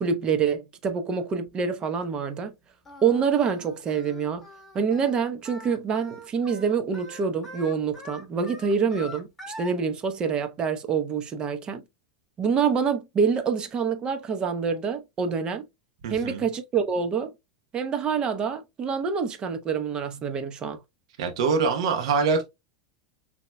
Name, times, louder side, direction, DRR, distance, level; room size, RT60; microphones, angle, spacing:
voice 1, 0.0-2.5 3.0-4.5 4.7-9.3 9.6-11.8 12.4-15.6 16.1-17.3 17.7-20.8, right 6 dB, 30° right, 0.8 m, -26 dB
Singing, 2.8-9.7, left 1 dB, 5° left, 2.1 m, -44 dB
voice 2, 16.0-16.5 21.2-22.4, right 5 dB, 75° right, 1.0 m, -24 dB
6.5 x 2.9 x 2.2 m
supercardioid pair, 125°, 3 cm